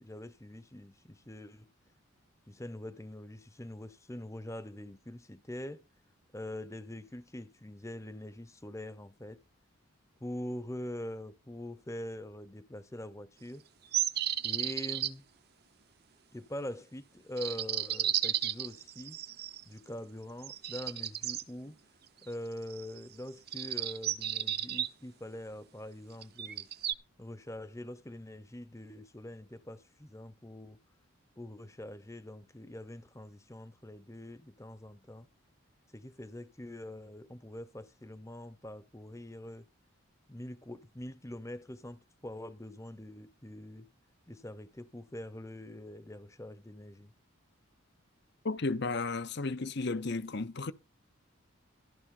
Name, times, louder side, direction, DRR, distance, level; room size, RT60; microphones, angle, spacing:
voice 1, 0.0-1.7 2.5-5.8 6.3-9.4 10.2-13.6 14.4-15.2 16.3-19.2 19.7-21.8 22.2-26.7 27.2-30.8 31.4-35.3 35.9-39.7 40.3-43.9 44.3-47.1, left 1 dB, 15° left, 0.9 m, -44 dB
sound 1, 13.9-15.1 17.4-19.6 20.4-21.4 22.7-23.0 23.5-24.9 26.2-26.9, right 11 dB, 45° right, 0.9 m, -33 dB
voice 2, 48.4-50.7, left 3 dB, 50° left, 0.8 m, -33 dB
14.0 x 12.0 x 3.9 m
head